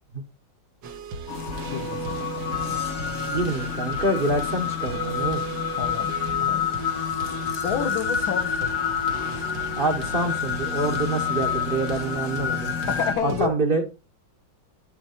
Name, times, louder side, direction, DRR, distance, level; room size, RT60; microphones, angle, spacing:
sound 1, 0.8-13.5, right 4 dB, 65° right, 1.8 m, -36 dB
sound 2, 1.3-13.2, left 8 dB, 50° left, 0.9 m, -28 dB
voice 1, 1.7-2.5 5.7-6.7 7.6-8.9 12.9-13.6, left 8 dB, 80° left, 1.9 m, -30 dB
voice 2, 3.3-5.4 9.8-12.7 13.2-13.8, right 2 dB, 30° right, 1.2 m, -26 dB
11.5 x 4.6 x 4.3 m
omnidirectional pair, 2.2 m